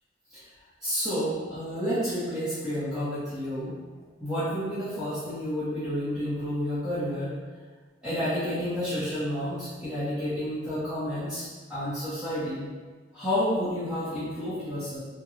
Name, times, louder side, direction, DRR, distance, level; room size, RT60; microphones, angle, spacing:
voice 1, 0.8-3.7 4.2-7.4 8.0-12.7 13.1-15.0, equal, 5° right, -17 dB, 1.4 m, -30 dB
4.6 x 2.6 x 2.9 m, 1.4 s
head